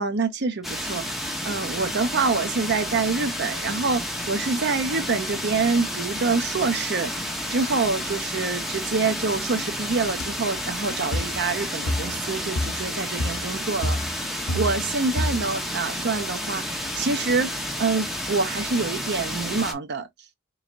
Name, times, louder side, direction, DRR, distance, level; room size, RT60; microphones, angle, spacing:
voice 1, 0.0-4.0 4.3-7.1 7.5-14.2 14.5-17.5 17.8-20.1, right 4 dB, 55° right, 0.7 m, -26 dB
sound 1, 0.6-19.7, equal, ahead, 1.0 m, -31 dB
sound 2, 10.2-10.4 11.1-11.4 11.9-12.2 12.6-12.9 13.2-13.5 13.8-14.9 15.2-15.6, left 1 dB, 70° left, 0.7 m, -28 dB
4.7 x 3.1 x 2.5 m
head